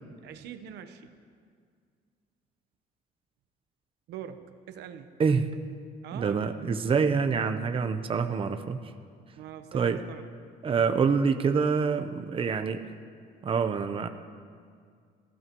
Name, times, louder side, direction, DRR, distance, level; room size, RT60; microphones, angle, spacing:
voice 1, 0.2-1.1 4.1-5.1 6.0-6.4 9.4-10.3, right 9 dB, 80° right, 8 dB, 1.1 m, -43 dB
voice 2, 6.1-8.8 9.7-10.0 10.6-12.8 13.4-14.1, right 5 dB, 30° right, 7 dB, 0.8 m, -26 dB
26.5 x 15.5 x 3.1 m, 2.1 s
cardioid pair, 110°, 17 cm